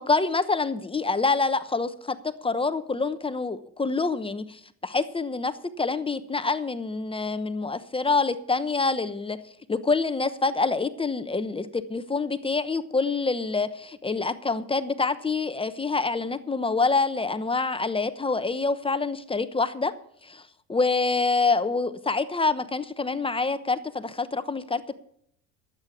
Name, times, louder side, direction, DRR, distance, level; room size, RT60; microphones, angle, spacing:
voice 1, 0.1-9.4 9.7-19.9 20.2-20.4 20.7-24.9, left 4 dB, 15° left, 12 dB, 0.9 m, -26 dB
13.0 x 8.5 x 7.2 m, 0.68 s
supercardioid pair, 90°, 33 cm